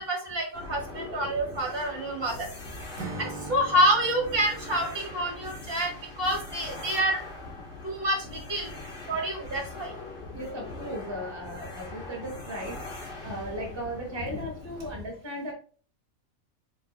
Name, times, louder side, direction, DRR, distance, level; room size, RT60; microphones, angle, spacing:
voice 1, 0.0-2.5 3.2-7.2 7.8-8.7 9.1-9.9, right 1 dB, 45° right, 1 dB, 1.5 m, -27 dB
sound 1, 0.5-14.9, left 2 dB, 50° left, 2.1 m, -42 dB
Acoustic guitar / Strum, 3.0-6.9, right 3 dB, 70° right, 1.2 m, -43 dB
voice 2, 10.3-15.5, equal, 25° right, 0 dB, 0.7 m, -37 dB
4.4 x 4.3 x 2.3 m, 0.40 s
omnidirectional pair, 1.5 m